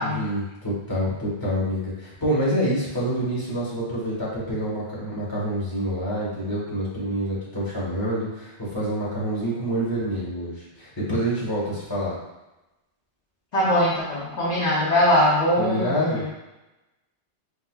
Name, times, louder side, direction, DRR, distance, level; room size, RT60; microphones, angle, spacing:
voice 1, 0.0-12.2 15.6-16.2, equal, 20° left, -7 dB, 1.1 m, -27 dB
voice 2, 13.5-16.3, equal, 40° left, -9 dB, 0.8 m, -21 dB
4.5 x 2.3 x 2.2 m, 0.99 s
omnidirectional pair, 1.1 m